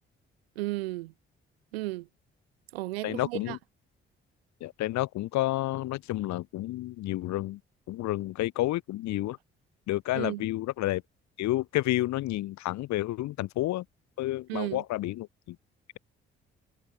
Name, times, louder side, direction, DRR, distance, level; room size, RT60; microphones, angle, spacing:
voice 1, 0.6-1.1 1.7-2.1 2.7-3.6 10.1-10.5 14.5-14.8, right 19 dB, 80° right, 2.9 m, -34 dB
voice 2, 3.0-3.6 4.6-7.6 7.9-9.4 9.9-11.0 11.4-13.8 14.2-15.6, left 16 dB, 65° left, 1.8 m, -30 dB
figure-of-eight pair, 40°, 30 cm